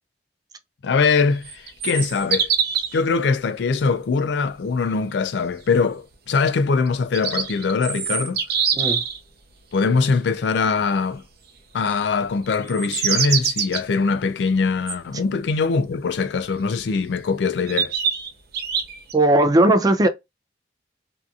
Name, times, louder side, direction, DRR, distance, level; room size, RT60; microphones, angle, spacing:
voice 1, 0.8-2.5 2.9-8.4 9.7-11.2 11.7-17.9, left 4 dB, 75° left, 0.4 m, -22 dB
sound 1, 1.4-3.0 6.9-9.2 12.6-13.8 14.9-15.0 16.8-16.9 17.7-19.1, right 7 dB, 60° right, 0.7 m, -24 dB
voice 2, 19.1-20.1, right 1 dB, 20° right, 0.4 m, -17 dB
2.7 x 2.4 x 2.3 m
head